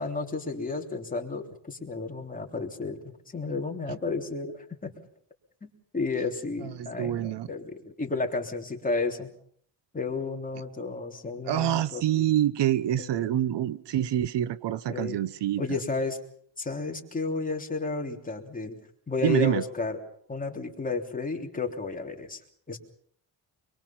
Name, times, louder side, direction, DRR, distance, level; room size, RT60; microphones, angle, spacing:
voice 1, 0.0-3.0 3.3-4.9 5.6-9.3 9.9-12.3 13.0-13.4 14.9-15.2 15.6-16.2 16.6-18.8 19.1-20.0 20.3-22.4 22.7-22.8, left 3 dB, 20° left, 1 dB, 3.4 m, -32 dB
voice 2, 6.8-7.5 11.5-15.6 19.2-19.6, right 11 dB, 75° right, 16 dB, 1.0 m, -26 dB
25.5 x 22.5 x 5.9 m, 0.62 s
cardioid pair, 130°, 42 cm